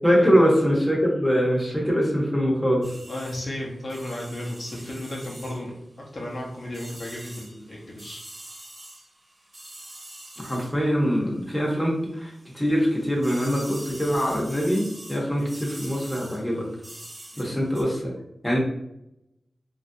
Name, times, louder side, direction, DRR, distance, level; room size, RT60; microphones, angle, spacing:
voice 1, 0.0-2.9 10.4-16.7 17.4-18.1 18.4-18.6, equal, 10° left, -4 dB, 0.9 m, -23 dB
sound 1, 2.8-11.9 12.2-17.8, right 1 dB, 45° right, 0.7 m, -45 dB
voice 2, 3.1-5.8 6.1-8.2 15.3-15.5 17.3-17.5, left 1 dB, 50° left, -4 dB, 0.8 m, -34 dB
2.9 x 2.6 x 2.7 m, 0.82 s
wide cardioid pair, 75°, 0 cm